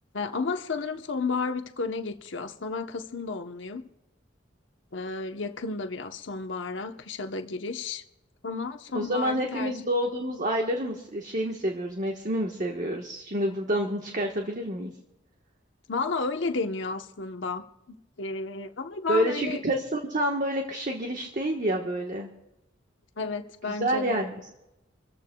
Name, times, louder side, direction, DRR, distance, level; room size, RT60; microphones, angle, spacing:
voice 1, 0.1-3.8 4.9-8.0 8.4-9.7 15.9-17.7 18.2-19.6 23.2-24.3, left 4 dB, 75° left, 0.9 m, -32 dB
voice 2, 8.9-14.9 19.1-22.3 23.7-24.5, right 1 dB, 45° right, 1.3 m, -28 dB
26.5 x 14.5 x 2.3 m
head